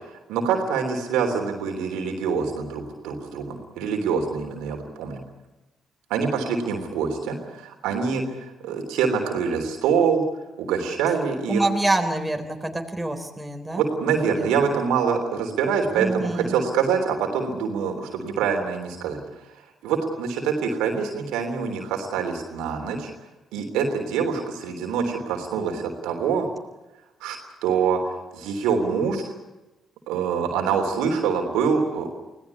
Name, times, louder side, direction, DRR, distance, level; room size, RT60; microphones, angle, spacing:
voice 1, 0.3-5.2 6.1-8.2 8.6-10.2 10.6-11.6 13.7-19.2 19.8-23.1 23.5-26.5 27.2-27.4 27.6-28.0 28.3-29.2 30.1-32.1, right 6 dB, 75° right, 3 dB, 3.4 m, -25 dB
voice 2, 11.5-13.8 14.1-14.7 15.9-16.6, right 2 dB, 10° right, 4 dB, 3.9 m, -26 dB
25.5 x 17.0 x 8.4 m, 1.0 s
hypercardioid pair, 45°, 0 cm